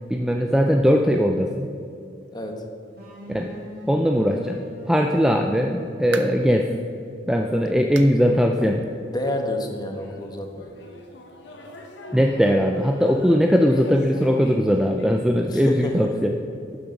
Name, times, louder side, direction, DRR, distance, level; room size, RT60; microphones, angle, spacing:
voice 1, 0.1-1.7 3.3-3.5 3.9-6.7 7.3-8.8 12.1-16.3, equal, 5° right, 3 dB, 0.4 m, -20 dB
voice 2, 2.3-2.6 8.6-8.7 9.0-10.7 15.5-16.2, left 1 dB, 20° left, 3 dB, 1.1 m, -29 dB
sound 1, 2.9-8.8, left 2 dB, 50° right, 2.8 m, -42 dB
sound 2, 6.1-6.6 7.1-7.2 7.9-8.2 8.5-8.6 9.1-9.2 10.3-10.4, right 6 dB, 75° right, 0.7 m, -38 dB
sound 3, 9.8-15.2, left 1 dB, 65° left, 1.3 m, -43 dB
11.5 x 7.2 x 5.3 m, 2.6 s
head